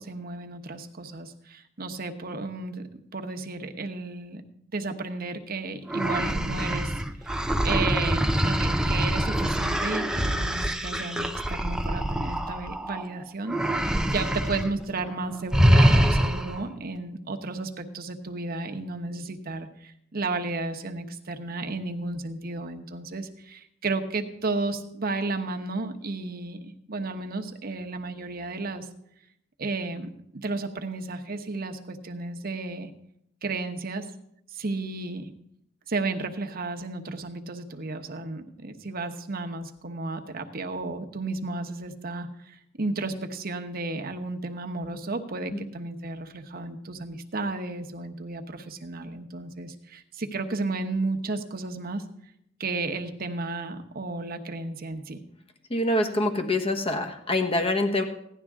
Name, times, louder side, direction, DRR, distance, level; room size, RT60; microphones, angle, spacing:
voice 1, 0.0-4.4 4.7-6.9 7.2-7.3 7.6-28.9 29.6-32.9 33.4-34.1 34.5-35.3 35.9-52.0 52.6-55.2, right 3 dB, 50° right, 6 dB, 1.0 m, -33 dB
sound 1, 5.9-13.1 13.5-14.7 15.0-15.2 15.5-16.6, equal, 5° right, 0.6 m, -24 dB
voice 2, 55.7-58.0, left 1 dB, 30° left, 6 dB, 1.2 m, -25 dB
16.5 x 11.0 x 3.6 m, 0.75 s
head